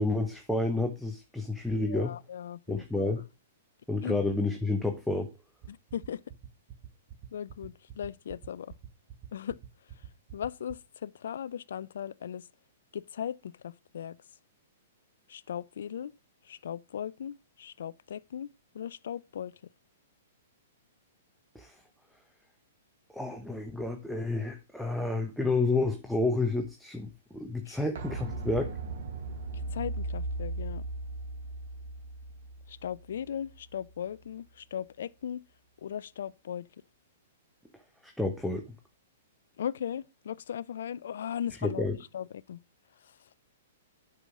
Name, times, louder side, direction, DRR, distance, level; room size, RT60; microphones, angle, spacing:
voice 1, 0.0-2.1 2.7-3.2 3.9-5.3 21.5-21.8 23.1-28.7 38.0-38.6 41.6-42.0, left 2 dB, ahead, 1.0 m, -30 dB
voice 2, 1.8-3.2 4.0-4.2 5.7-6.2 7.3-8.7 9.3-9.6 10.3-12.4 12.9-14.2 15.3-16.1 16.5-18.5 18.7-19.5 27.7-27.8 29.7-30.8 32.7-35.4 35.8-36.7 39.6-41.8 42.1-42.6, left 9 dB, 65° left, 0.4 m, -38 dB
sound 1, 5.6-10.7, right 10 dB, 40° right, 1.8 m, -45 dB
sound 2, 27.9-33.6 33.9-34.0, right 2 dB, 65° right, 3.2 m, -37 dB
8.2 x 5.5 x 6.1 m
hypercardioid pair, 115°, 0 cm